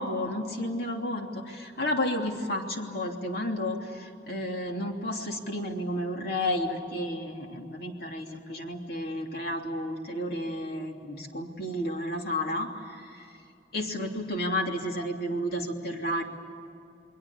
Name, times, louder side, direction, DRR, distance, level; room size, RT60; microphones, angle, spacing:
voice 1, 0.0-13.3 13.7-16.2, left 1 dB, 60° left, 2 dB, 3.0 m, -32 dB
29.5 x 21.5 x 8.6 m, 2.6 s
head